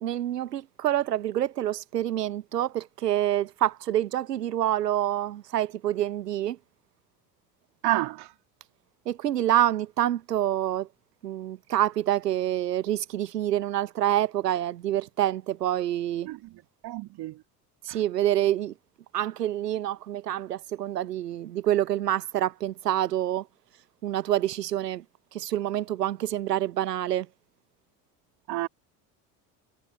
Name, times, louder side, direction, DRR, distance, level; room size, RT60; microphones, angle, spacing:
voice 1, 0.0-6.6 9.1-10.9 11.2-16.3 17.8-18.7 19.1-23.5 24.0-25.0 25.3-27.3, right 12 dB, 85° right, 0.8 m, -27 dB
voice 2, 7.8-8.3 16.2-17.4 17.9-18.0 28.5-28.7, right 17 dB, 55° right, 2.8 m, -30 dB
figure-of-eight pair, 60°, 47 cm